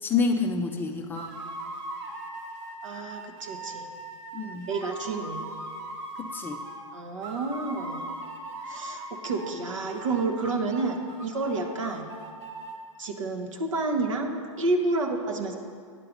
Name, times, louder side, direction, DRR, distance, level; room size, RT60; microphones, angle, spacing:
voice 1, 0.0-1.3 4.3-4.7 6.2-6.6, left 4 dB, 10° left, 4 dB, 0.4 m, -28 dB
sound 1, 1.1-6.8 7.2-9.6 9.9-12.8, right 2 dB, 55° right, 1.5 m, -39 dB
voice 2, 2.8-3.9 4.7-5.5 6.9-8.2 8.7-12.1 13.0-15.6, right 3 dB, 70° right, 4 dB, 1.1 m, -30 dB
9.6 x 5.7 x 5.2 m, 2.1 s
hypercardioid pair, 125°, 17 cm